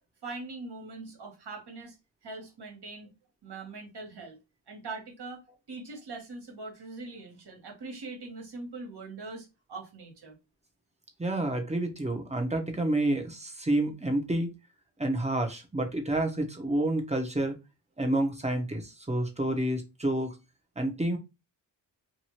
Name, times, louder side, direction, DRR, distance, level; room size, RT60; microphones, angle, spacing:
voice 1, 0.2-2.0 2.2-3.1 3.4-4.4 4.7-5.4 5.7-10.4, right 3 dB, 60° right, 1.4 m, -42 dB
voice 2, 11.2-14.5 15.0-17.5 18.0-20.3 20.8-21.2, right 1 dB, 15° right, 1.0 m, -29 dB
2.7 x 2.7 x 3.0 m
cardioid pair, 70°, 45 cm